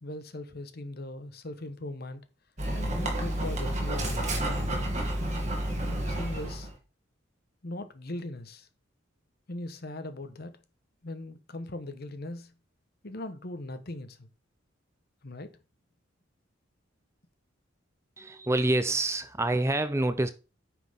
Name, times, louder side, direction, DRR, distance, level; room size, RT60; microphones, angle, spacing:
voice 1, 0.0-2.2 2.7-4.9 5.7-6.7 7.6-8.7 9.5-10.6 11.0-12.5 13.0-14.3 15.2-15.5, left 1 dB, 50° left, 1.1 m, -39 dB
Dog, 2.6-6.7, right 1 dB, 35° right, 2.5 m, -30 dB
voice 2, 18.2-20.3, right 2 dB, 15° right, 0.5 m, -27 dB
9.5 x 6.0 x 3.6 m
head